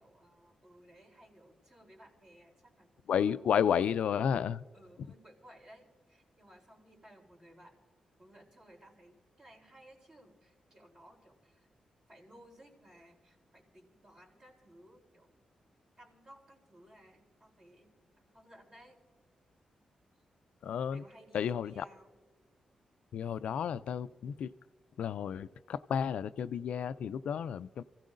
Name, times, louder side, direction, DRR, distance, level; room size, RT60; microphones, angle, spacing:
voice 1, 0.0-3.7 4.7-7.8 8.2-11.7 12.1-15.3 16.0-19.0 20.9-22.1, right 1 dB, 35° right, 1 dB, 3.5 m, -59 dB
voice 2, 3.1-4.6 20.6-21.0 21.3-21.8 23.1-24.5 25.0-27.8, left 8 dB, 80° left, 14 dB, 0.3 m, -32 dB
27.5 x 15.5 x 2.6 m, 1.4 s
cardioid pair, 100°, 2 cm